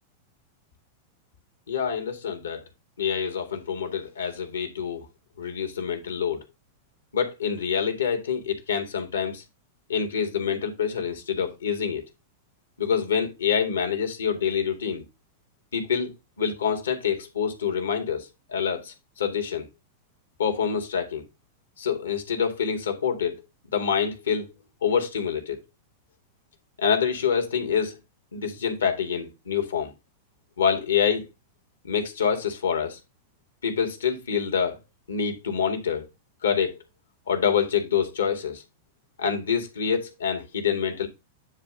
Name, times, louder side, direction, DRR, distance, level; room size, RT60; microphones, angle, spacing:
voice 1, 1.7-2.6 3.0-5.1 5.4-6.4 7.1-9.4 9.9-12.0 12.8-15.0 15.7-19.7 20.4-21.3 21.8-23.4 23.7-24.5 24.8-25.6 26.8-28.0 28.3-29.9 30.6-31.3 31.8-33.0 33.6-34.8 35.1-36.1 36.4-36.8 37.3-38.6 39.2-41.1, left 7 dB, 75° left, 2.0 m, -26 dB
9.7 x 3.3 x 5.1 m
figure-of-eight pair, 95°, 0 cm